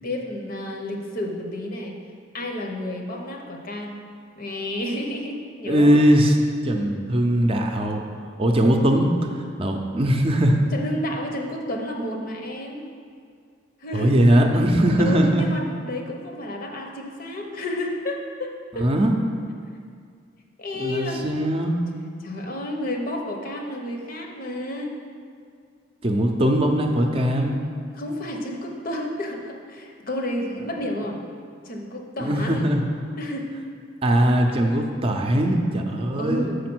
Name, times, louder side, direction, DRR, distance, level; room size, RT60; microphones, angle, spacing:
voice 1, 0.0-2.0 2.3-4.0 4.4-6.0 10.7-12.8 13.8-14.1 15.0-18.9 20.6-21.5 22.2-24.9 27.9-31.2 31.6-32.7 33.2-33.5 36.2-36.6, left 1 dB, 50° left, 1 dB, 0.9 m, -31 dB
voice 2, 5.6-6.4 6.6-8.0 8.4-9.1 9.6-10.6 13.9-15.4 18.8-19.1 20.7-21.8 26.0-27.6 32.2-32.8 34.0-36.5, right 1 dB, 30° right, 3 dB, 0.6 m, -20 dB
6.6 x 5.0 x 6.1 m, 2.2 s
head